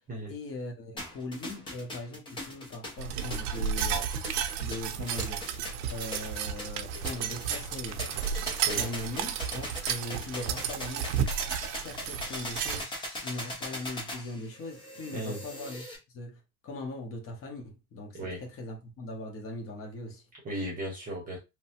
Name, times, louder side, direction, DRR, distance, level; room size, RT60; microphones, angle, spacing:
voice 1, 0.3-5.5 5.8-8.0 8.6-11.1 11.8-20.3, left 2 dB, 30° left, 0.9 m, -40 dB
sound 1, 1.0-16.0, left 1 dB, 10° left, 0.4 m, -40 dB
sound 2, 3.0-12.8, right 8 dB, 85° right, 0.7 m, -33 dB
voice 2, 20.4-21.4, right 1 dB, 20° right, 0.8 m, -35 dB
3.0 x 2.1 x 2.8 m
cardioid pair, 155°, 45 cm